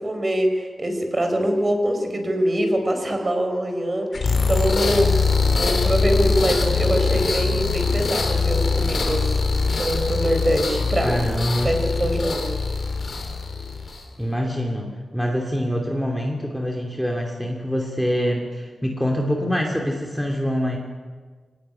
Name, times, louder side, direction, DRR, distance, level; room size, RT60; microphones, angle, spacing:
voice 1, 0.0-5.1 5.5-9.3 9.8-11.1 11.6-12.5, right 1 dB, 25° right, 5 dB, 4.6 m, -23 dB
sound 1, 4.1-14.1, left 4 dB, 50° left, 4.2 m, -22 dB
voice 2, 11.0-11.7 14.2-14.9 15.1-20.8, equal, ahead, 1 dB, 2.7 m, -25 dB
24.5 x 18.0 x 9.9 m, 1.5 s
wide cardioid pair, 120°, 0 cm